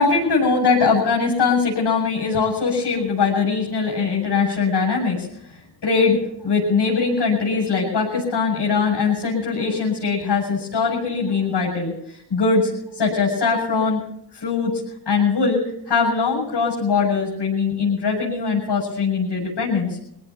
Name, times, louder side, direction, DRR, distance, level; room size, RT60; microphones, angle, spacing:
voice 1, 0.0-6.2 6.4-14.0 14.3-14.8 15.1-20.0, left 4 dB, 65° left, -4 dB, 7.8 m, -21 dB
25.5 x 17.5 x 3.0 m, 0.74 s
cardioid pair, 55°, 43 cm